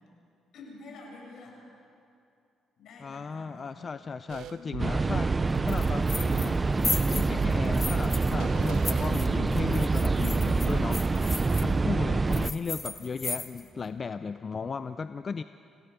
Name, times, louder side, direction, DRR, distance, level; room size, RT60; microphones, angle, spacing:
voice 1, 0.5-1.6 2.8-4.2 4.5-4.9 12.0-12.5, left 3 dB, 70° left, 0 dB, 6.8 m, -49 dB
voice 2, 3.0-5.3 5.6-6.8 7.1-11.0 11.6-15.4, left 5 dB, 35° left, 11 dB, 0.5 m, -35 dB
sound 1, 4.3-9.8, right 11 dB, 80° right, 0.6 m, -42 dB
sound 2, 4.8-12.5, right 3 dB, 25° right, 0.5 m, -26 dB
sound 3, 5.7-6.6 6.8-8.3 8.6-11.6 12.3-13.7, left 3 dB, 20° left, 1.4 m, -35 dB
28.0 x 17.0 x 7.0 m, 2.6 s
cardioid pair, 100°, 0 cm